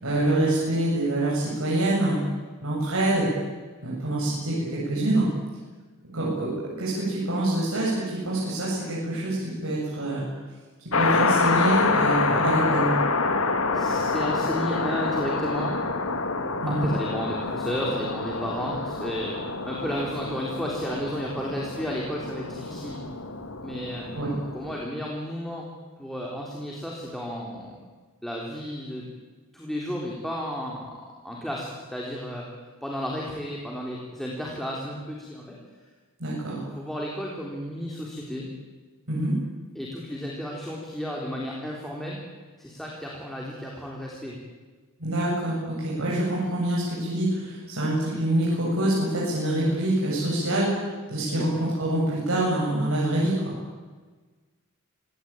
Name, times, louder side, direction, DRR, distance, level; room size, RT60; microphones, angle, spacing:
voice 1, 0.0-2.2 2.6-3.3 3.8-5.3 6.1-10.2 10.9-12.9 16.6-16.9 24.1-24.3 36.2-36.6 39.1-39.3 45.0-53.5, right 1 dB, 70° right, -5 dB, 7.7 m, -25 dB
sound 1, 10.9-24.8, left 3 dB, 65° left, 2.2 m, -27 dB
voice 2, 13.7-15.8 16.7-19.4 19.7-23.0 23.6-24.3 24.5-25.7 26.0-27.8 28.2-29.1 29.5-32.5 32.8-35.6 36.8-38.5 39.8-42.2 42.6-44.4 51.3-51.5, equal, ahead, -3 dB, 3.7 m, -33 dB
26.0 x 17.5 x 8.9 m, 1.4 s
head